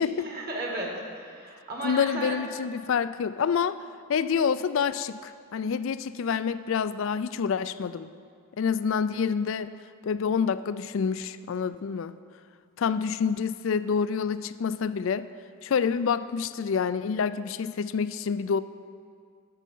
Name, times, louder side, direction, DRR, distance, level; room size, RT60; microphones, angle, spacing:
voice 1, 0.2-2.4, right 1 dB, 45° right, -1 dB, 1.7 m, -34 dB
voice 2, 1.8-3.8 4.1-8.1 8.6-9.8 10.0-12.1 12.8-15.3 15.6-18.6, left 6 dB, 60° left, 14 dB, 0.3 m, -27 dB
11.0 x 7.4 x 5.4 m, 2.2 s
head